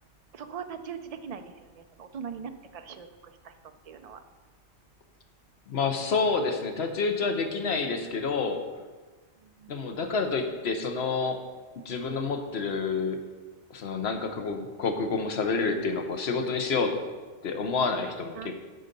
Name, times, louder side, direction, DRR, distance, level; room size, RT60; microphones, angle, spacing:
voice 1, 0.3-4.2 9.4-9.8 18.3-18.6, right 7 dB, 45° right, 8 dB, 0.5 m, -41 dB
voice 2, 5.7-8.6 9.7-11.4 11.8-13.2 13.7-17.0 17.4-18.4, left 4 dB, 70° left, 5 dB, 1.1 m, -28 dB
12.0 x 4.1 x 5.3 m, 1.3 s
omnidirectional pair, 1.1 m